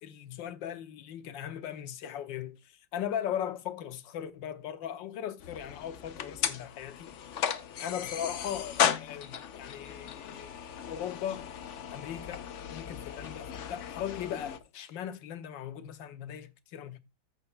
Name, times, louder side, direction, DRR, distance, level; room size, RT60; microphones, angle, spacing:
voice 1, 0.0-7.1 7.8-10.5 10.9-11.5 11.9-12.4 12.7-17.0, left 9 dB, 75° left, 1.5 m, -38 dB
sound 1, 5.4-14.6, left 9 dB, 60° left, 0.7 m, -35 dB
14.0 x 6.7 x 2.3 m
omnidirectional pair, 2.1 m